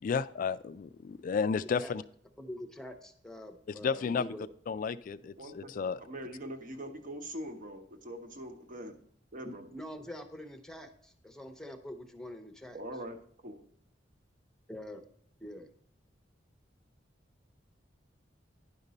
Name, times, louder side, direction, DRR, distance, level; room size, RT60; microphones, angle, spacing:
voice 1, 0.0-2.0 3.8-4.3 4.7-6.0, left 5 dB, 45° left, 15 dB, 0.3 m, -32 dB
voice 2, 2.4-4.5 9.4-12.8 14.7-15.0 15.4-15.7, left 1 dB, 5° left, 7 dB, 0.7 m, -45 dB
voice 3, 5.4-8.9 9.3-9.7 12.7-13.2 13.4-13.6, right 1 dB, 45° right, 6 dB, 0.9 m, -43 dB
10.5 x 5.2 x 4.0 m, 0.64 s
head